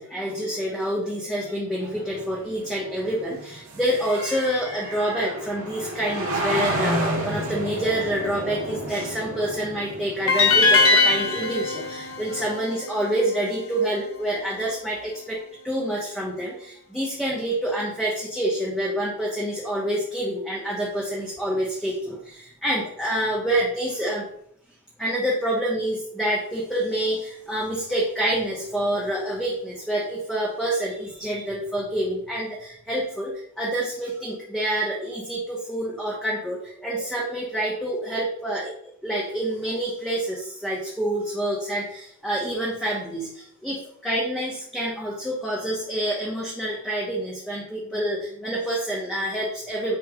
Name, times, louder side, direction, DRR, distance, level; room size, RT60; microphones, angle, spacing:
voice 1, 0.0-15.4 15.6-24.3 25.0-38.7 39.0-50.0, right 1 dB, 5° left, -5 dB, 1.1 m, -27 dB
sound 1, 1.8-12.5, right 1 dB, 80° right, 1.7 m, -31 dB
sound 2, 10.3-13.4, left 3 dB, 70° left, 1.4 m, -21 dB
9.4 x 3.4 x 4.9 m, 0.70 s
head